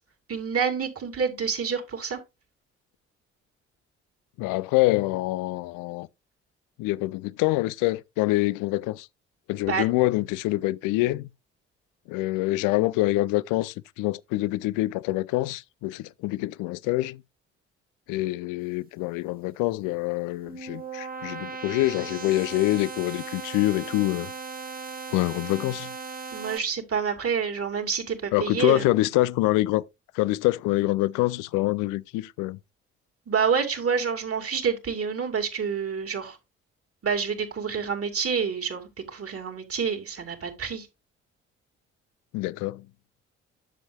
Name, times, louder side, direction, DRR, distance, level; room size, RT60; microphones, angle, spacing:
voice 1, 0.3-2.2 9.7-9.8 26.3-28.8 33.3-36.4 37.0-40.9, right 6 dB, 40° right, 2.7 m, -28 dB
voice 2, 4.4-6.1 6.8-9.1 9.5-11.3 12.1-17.2 18.1-24.3 25.1-25.9 28.3-29.8 30.1-32.6 42.3-42.9, left 18 dB, 65° left, 0.5 m, -25 dB
sound 1, 20.1-26.6, right 4 dB, 25° right, 1.4 m, -37 dB
10.5 x 7.2 x 2.3 m
figure-of-eight pair, 45°, 35 cm